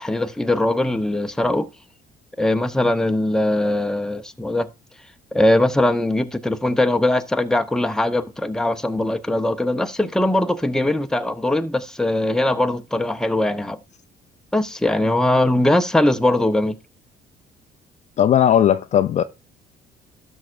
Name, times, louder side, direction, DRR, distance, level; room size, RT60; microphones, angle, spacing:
voice 1, 0.0-1.7 2.4-4.7 5.3-13.8 14.5-16.8, left 1 dB, 5° left, 0.8 m, -20 dB
voice 2, 18.2-19.2, left 10 dB, 45° left, 0.4 m, -16 dB
12.5 x 6.3 x 2.5 m
cardioid pair, 110°, 17 cm